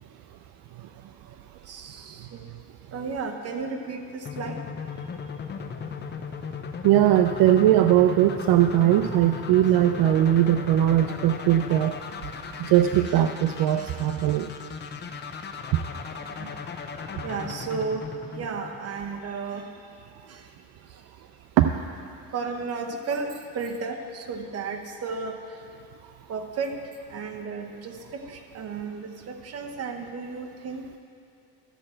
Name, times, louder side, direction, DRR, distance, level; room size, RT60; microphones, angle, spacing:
voice 1, 1.7-2.4 2.9-4.6 13.1-13.2 13.8-14.0 16.3-16.5 17.2-19.7 20.3-20.5 22.3-25.4 26.3-26.8 27.1-30.8, right 4 dB, 40° right, 4 dB, 1.0 m, -33 dB
sound 1, 4.3-19.2, left 5 dB, 30° left, 0.6 m, -37 dB
voice 2, 6.8-11.9 12.6-14.5 21.6-21.7, right 12 dB, 70° right, 7 dB, 0.5 m, -20 dB
13.0 x 7.7 x 4.4 m, 2.4 s
cardioid pair, 135°, 36 cm